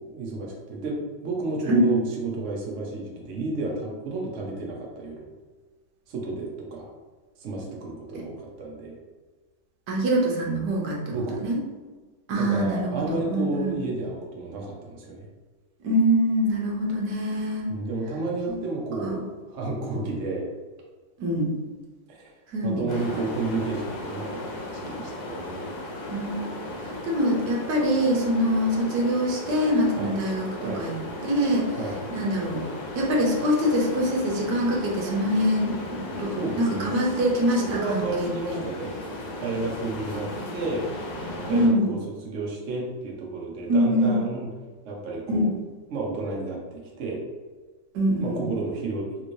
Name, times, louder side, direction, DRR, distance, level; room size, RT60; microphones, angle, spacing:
voice 1, 0.0-5.3 6.1-6.9 7.4-9.0 11.1-11.5 12.4-15.3 17.7-20.5 22.1-22.3 22.6-25.7 30.0-30.1 30.6-30.8 31.8-32.0 36.3-36.9 37.7-39.0 39.4-40.8 41.5-44.5 44.8-45.5 45.9-47.2 48.2-49.1, right 3 dB, 80° right, -2 dB, 0.6 m, -31 dB
voice 2, 1.7-2.0 8.1-8.2 9.9-11.6 12.3-13.8 15.8-17.7 19.0-19.2 21.2-21.5 22.5-23.0 26.1-26.6 26.8-30.9 31.2-31.8 32.1-32.6 32.9-38.6 41.5-41.9 43.7-44.2 45.3-45.5 47.9-48.5, equal, 65° right, -2 dB, 1.2 m, -24 dB
sound 1, 22.9-41.7, left 1 dB, 70° left, 1.3 m, -36 dB
3.5 x 3.0 x 2.6 m, 1.3 s
omnidirectional pair, 2.2 m